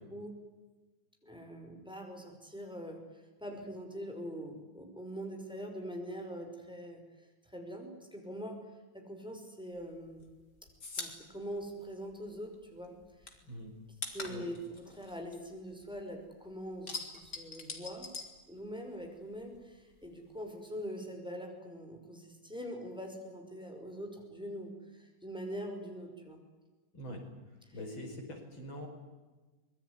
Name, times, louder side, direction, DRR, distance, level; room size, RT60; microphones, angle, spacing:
voice 1, 1.2-3.0 3.4-7.0 7.5-8.6 8.9-10.2 11.0-13.0 14.1-18.1 18.5-26.4 27.7-27.8, equal, ahead, 3 dB, 5.5 m, -43 dB
sound 1, 9.8-12.6 12.8-16.1 16.4-19.1 19.3-20.4, left 3 dB, 55° left, 3.8 m, -44 dB
voice 2, 13.4-13.7 14.3-14.5 26.9-27.2 27.7-28.9, equal, 85° left, 4 dB, 5.8 m, -43 dB
25.0 x 21.0 x 9.8 m, 1.2 s
omnidirectional pair, 2.1 m